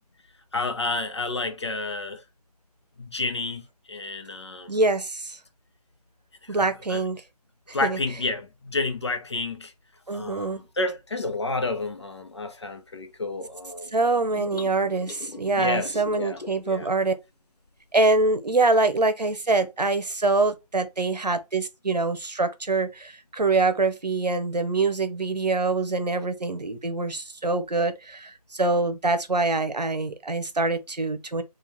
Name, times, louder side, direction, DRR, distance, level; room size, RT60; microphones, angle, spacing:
voice 1, 0.5-2.2 3.0-4.8 6.4-7.0 7.7-9.7 10.1-13.9 15.5-16.4 16.6-16.9, left 3 dB, 45° left, 0.8 m, -30 dB
voice 2, 4.7-5.4 6.5-7.2 7.7-8.0 10.1-10.6 13.9-17.1 17.9-31.4, right 3 dB, 85° right, 0.8 m, -24 dB
sound 1, 14.3-16.7, left 4 dB, 75° left, 0.7 m, -42 dB
3.8 x 2.5 x 4.3 m
figure-of-eight pair, 165°, 21 cm